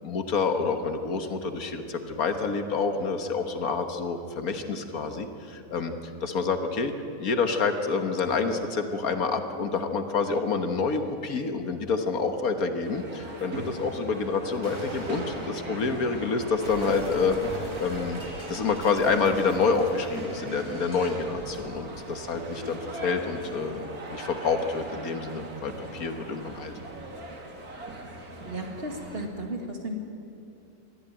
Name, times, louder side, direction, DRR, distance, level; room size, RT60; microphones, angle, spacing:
voice 1, 0.0-6.9 7.2-18.2 18.5-23.8 24.1-26.7, left 4 dB, 70° left, 7 dB, 1.8 m, -28 dB
sound 1, 12.8-29.3, right 2 dB, 70° right, 2.9 m, -40 dB
Explosion, 14.6-21.3, equal, 20° right, 3.0 m, -42 dB
voice 2, 28.2-30.0, right 1 dB, 40° right, 2 dB, 2.5 m, -35 dB
22.0 x 14.5 x 9.1 m, 2.7 s
omnidirectional pair, 1.6 m